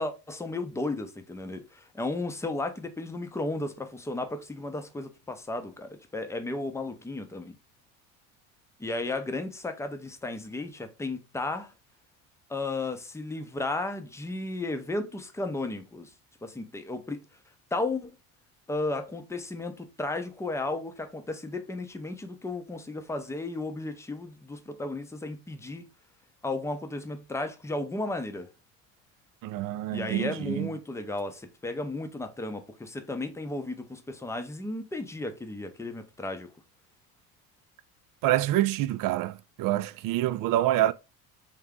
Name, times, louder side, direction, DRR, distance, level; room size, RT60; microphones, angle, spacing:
voice 1, 0.0-7.5 8.8-11.7 12.5-16.1 16.4-17.2 17.7-18.1 18.7-25.9 26.4-28.5 29.9-36.5, left 2 dB, 5° left, 0.6 m, -34 dB
voice 2, 29.4-30.7 38.2-40.9, right 14 dB, 55° right, 0.4 m, -26 dB
3.5 x 2.7 x 3.5 m
supercardioid pair, 95°, 41 cm